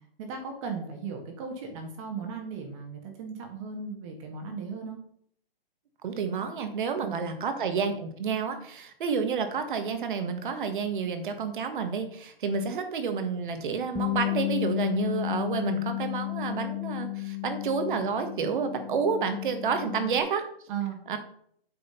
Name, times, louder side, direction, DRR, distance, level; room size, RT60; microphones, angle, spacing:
voice 1, 0.2-5.0 7.0-7.3 20.7-21.0, right 5 dB, 30° right, 3 dB, 1.8 m, -36 dB
voice 2, 6.0-20.4 21.1-21.2, right 5 dB, 55° right, 7 dB, 1.7 m, -30 dB
Bass guitar, 14.0-20.2, left 19 dB, 5° left, 0.8 m, -33 dB
8.6 x 4.9 x 5.7 m, 0.64 s
hypercardioid pair, 150°, 30 cm